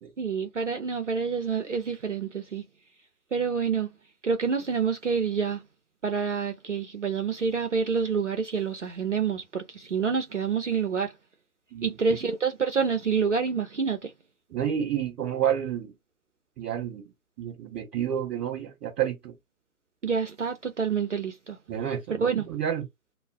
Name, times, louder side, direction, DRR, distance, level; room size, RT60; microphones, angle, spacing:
voice 1, 0.2-2.6 3.3-3.9 4.2-5.6 6.0-11.1 11.8-14.1 20.0-21.6 22.2-22.5, right 5 dB, 55° right, 0.5 m, -27 dB
voice 2, 11.7-12.2 14.5-15.9 16.6-17.0 17.4-19.3 21.7-22.8, right 9 dB, ahead, 0.9 m, -30 dB
2.4 x 2.0 x 3.3 m
figure-of-eight pair, 150°, 46 cm